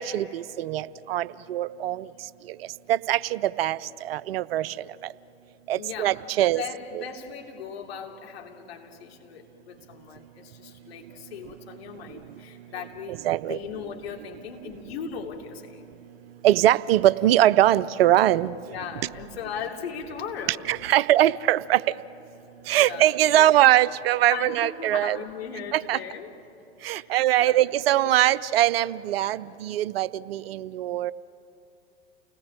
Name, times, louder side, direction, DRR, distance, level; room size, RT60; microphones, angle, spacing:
voice 1, 0.0-2.1 2.5-2.6 2.9-4.8 5.7-6.6 6.9-7.0 13.2-13.6 16.4-18.6 20.7-21.8 22.7-25.2 25.7-26.0 26.8-31.1, right 13 dB, 65° right, 17 dB, 0.7 m, -22 dB
voice 2, 5.8-15.9 18.6-20.7 21.0-21.1 22.8-23.5 24.3-26.3 26.9-27.6 29.2-29.4, left 7 dB, 70° left, 2 dB, 3.0 m, -38 dB
29.5 x 19.5 x 8.8 m, 2.9 s
figure-of-eight pair, 85°, 32 cm